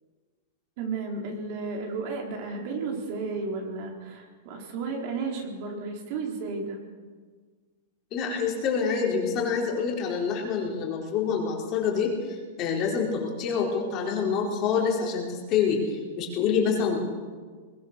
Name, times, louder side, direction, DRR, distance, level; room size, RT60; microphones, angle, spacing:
voice 1, 0.8-6.8, right 4 dB, 45° right, 1 dB, 4.0 m, -33 dB
voice 2, 8.1-17.0, left 6 dB, 30° left, -1 dB, 4.4 m, -27 dB
22.0 x 21.0 x 6.8 m, 1.5 s
supercardioid pair, 160°, 0 cm